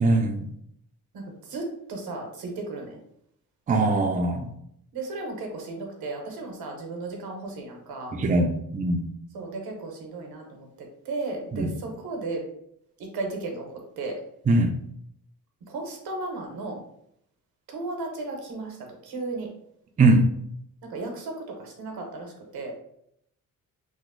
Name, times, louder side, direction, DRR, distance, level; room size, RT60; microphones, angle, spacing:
voice 1, 0.0-0.5 3.7-4.5 8.1-9.0 11.5-11.7 14.5-14.8 20.0-20.3, right 2 dB, 25° right, 4 dB, 0.4 m, -21 dB
voice 2, 1.1-3.0 4.9-8.1 9.3-12.4 13.1-14.2 15.7-16.8 17.7-18.8 19.0-19.5 20.8-22.8, right 3 dB, 90° right, 2 dB, 0.9 m, -35 dB
3.0 x 2.0 x 3.6 m, 0.73 s
cardioid pair, 95°, 36 cm